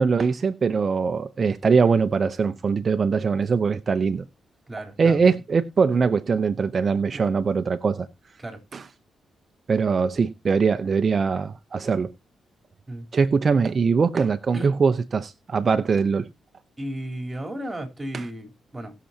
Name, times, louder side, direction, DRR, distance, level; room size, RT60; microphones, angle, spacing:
voice 1, 0.0-4.2 5.0-8.1 8.7-8.9 9.7-12.1 13.1-16.3 18.1-18.3, right 5 dB, 45° right, 0.8 m, -22 dB
voice 2, 4.7-5.3 8.4-8.6 12.9-13.1 14.5-14.7 16.8-18.9, right 1 dB, 20° right, 3.6 m, -34 dB
19.5 x 6.9 x 2.8 m
cardioid pair, 65°, 0 cm